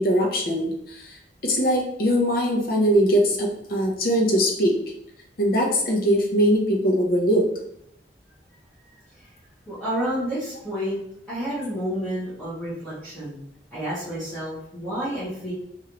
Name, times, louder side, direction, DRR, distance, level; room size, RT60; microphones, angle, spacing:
voice 1, 0.0-4.8 5.4-7.5, equal, 50° left, 0 dB, 0.7 m, -21 dB
voice 2, 9.7-11.0 11.3-13.4 13.7-15.5, equal, 5° left, -14 dB, 1.0 m, -30 dB
3.0 x 2.5 x 2.9 m, 0.73 s
head